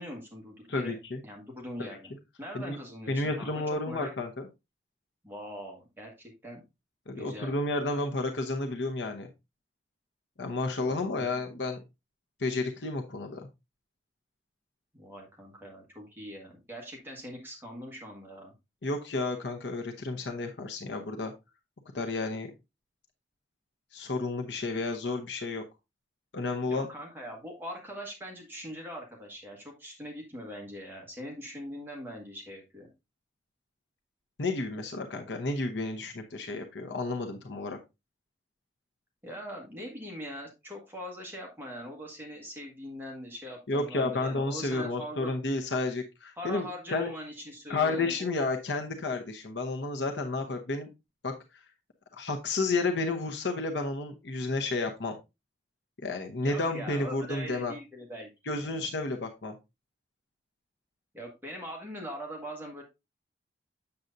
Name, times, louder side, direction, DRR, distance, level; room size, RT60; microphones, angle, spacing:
voice 1, 0.0-1.0 1.2-2.1 2.4-4.1 5.2-6.6 7.2-7.6 10.9-11.3 14.9-18.5 26.7-32.9 39.2-45.3 46.4-48.3 56.4-58.9 61.1-62.8, equal, 10° right, 0 dB, 1.6 m, -42 dB
voice 2, 0.7-1.2 1.8-1.9 2.5-2.8 3.1-4.3 7.1-9.3 10.4-11.8 12.4-13.5 18.8-21.3 21.9-22.5 23.9-25.6 26.3-26.9 34.4-37.8 43.7-47.1 47.7-50.9 51.2-51.3 52.1-55.1 56.0-57.7 58.5-59.5, left 3 dB, 80° left, 4 dB, 0.9 m, -31 dB
7.8 x 7.1 x 2.6 m, 0.24 s
head